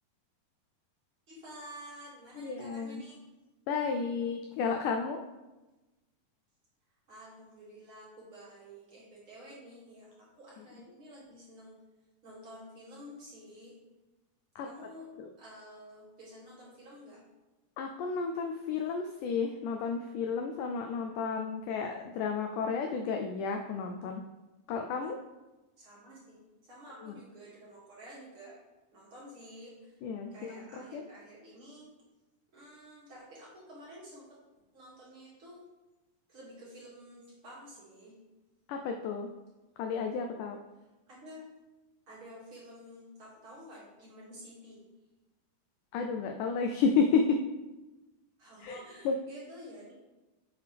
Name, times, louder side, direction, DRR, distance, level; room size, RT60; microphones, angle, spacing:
voice 1, 1.3-3.2 7.1-11.7 12.2-13.7 14.6-15.1 15.4-17.2 25.0-25.1 25.8-28.6 28.9-30.0 30.3-31.9 32.5-34.4 34.7-35.6 36.3-38.1 41.1-41.5 42.1-44.8 48.4-49.9, equal, 40° right, -7 dB, 2.9 m, -50 dB
voice 2, 2.4-3.0 3.7-5.2 14.6-14.7 15.2-15.3 17.8-24.2 24.7-25.2 27.0-27.1 30.0-31.0 38.7-39.3 39.8-40.6 45.9-47.4 48.6-48.8 49.1-49.2, left 5 dB, 85° left, 4 dB, 1.8 m, -32 dB
9.0 x 6.6 x 3.4 m, 1.1 s
omnidirectional pair, 4.2 m